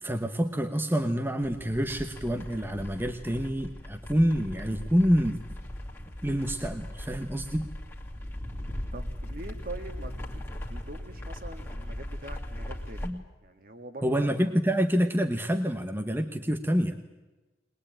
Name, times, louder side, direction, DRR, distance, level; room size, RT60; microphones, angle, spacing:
voice 1, 0.0-5.4 6.2-7.7 13.0-13.2 14.0-17.0, equal, 10° right, 6 dB, 1.1 m, -27 dB
sound 1, 1.4-13.1, left 1 dB, 10° left, 2.4 m, -39 dB
voice 2, 8.9-10.4 10.7-13.1 13.4-14.3, right 2 dB, 45° right, 7 dB, 1.9 m, -43 dB
21.5 x 20.5 x 9.0 m, 1.1 s
head